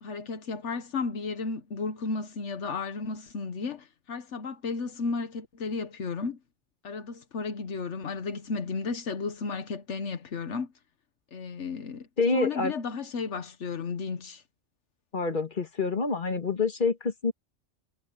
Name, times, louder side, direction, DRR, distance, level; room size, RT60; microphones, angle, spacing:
voice 1, 0.0-6.4 6.8-10.7 11.3-14.4, left 4 dB, 80° left, 1.4 m, -33 dB
voice 2, 12.2-12.7 15.1-17.3, left 4 dB, 45° left, 1.9 m, -27 dB
omnidirectional pair, 1.2 m